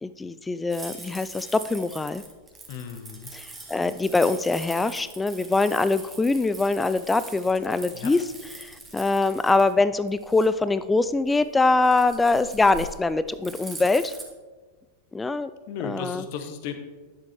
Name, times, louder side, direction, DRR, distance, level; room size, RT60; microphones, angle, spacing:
voice 1, 0.0-2.2 3.3-8.2 8.6-14.1 15.1-15.5 15.8-16.2, left 3 dB, 10° left, 14 dB, 0.3 m, -23 dB
sound 1, 0.7-14.2, right 2 dB, 10° right, 1.7 m, -43 dB
voice 2, 2.7-3.3 7.9-8.1 15.7-16.7, left 7 dB, 45° left, 7 dB, 1.0 m, -35 dB
10.5 x 7.4 x 3.6 m, 1.3 s
figure-of-eight pair, 90°, 0 cm